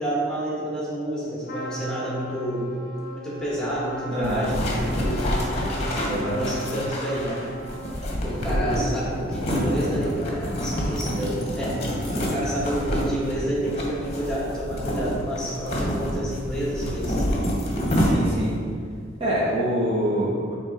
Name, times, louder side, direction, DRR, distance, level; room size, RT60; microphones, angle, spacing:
voice 1, 0.0-2.7 3.1-5.7 6.1-7.4 8.1-11.8 12.2-17.4, right 1 dB, 5° left, -6 dB, 1.3 m, -29 dB
Trumpet, 1.4-8.4, right 1 dB, 50° left, 0.6 m, -39 dB
voice 2, 4.1-4.5 6.1-6.4 17.9-18.6 19.2-20.5, equal, 30° right, -6 dB, 0.8 m, -25 dB
sound 1, 4.2-18.6, equal, 35° left, 1.0 m, -27 dB
7.3 x 3.1 x 4.1 m, 2.1 s
head